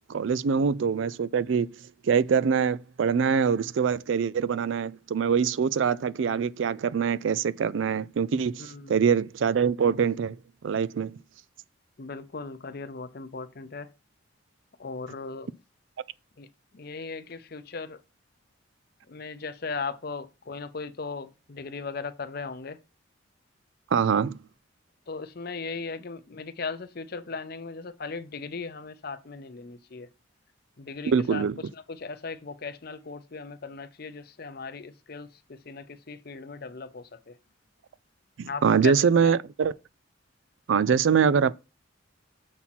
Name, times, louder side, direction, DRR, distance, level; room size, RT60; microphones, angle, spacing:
voice 1, 0.1-1.7 2.0-10.4 10.6-11.2 23.9-24.4 31.0-31.6 38.4-39.7 40.7-41.5, right 6 dB, 65° right, 0.4 m, -24 dB
voice 2, 8.6-9.0 12.0-13.9 14.8-15.5 16.4-16.5 16.7-18.0 19.1-22.8 25.1-30.1 30.8-31.4 31.7-37.4 38.5-39.0 39.2-39.4, left 4 dB, 50° left, 0.6 m, -37 dB
7.1 x 4.3 x 4.1 m
head